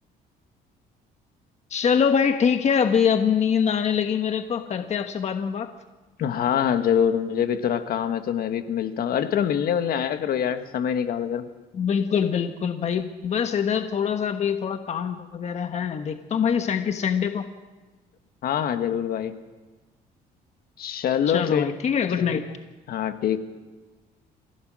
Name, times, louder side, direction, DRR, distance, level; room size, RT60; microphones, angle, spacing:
voice 1, 1.7-5.7 11.7-17.5 21.3-22.4, left 7 dB, 40° left, 7 dB, 1.2 m, -24 dB
voice 2, 6.2-11.4 18.4-19.4 20.8-21.7 22.2-22.4 22.9-23.4, left 9 dB, 60° left, 9 dB, 1.5 m, -25 dB
27.0 x 16.0 x 6.3 m, 1.2 s
cardioid pair, 110°, 17 cm